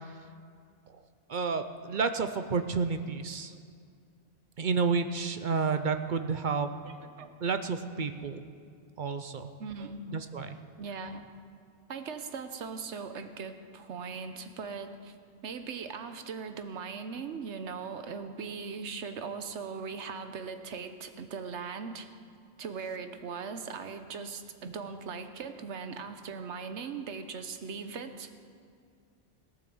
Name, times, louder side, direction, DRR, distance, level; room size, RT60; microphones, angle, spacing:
voice 1, 1.3-3.5 4.6-6.7 7.4-8.4 9.0-9.5 10.1-10.6 24.6-24.7, right 5 dB, 50° right, 9 dB, 0.7 m, -30 dB
voice 2, 6.8-7.3 9.6-10.2 10.8-11.3 11.9-15.1 15.4-22.1 22.6-28.4, right 5 dB, 75° right, 8 dB, 1.2 m, -39 dB
17.5 x 8.9 x 7.1 m, 2.2 s
omnidirectional pair, 1.2 m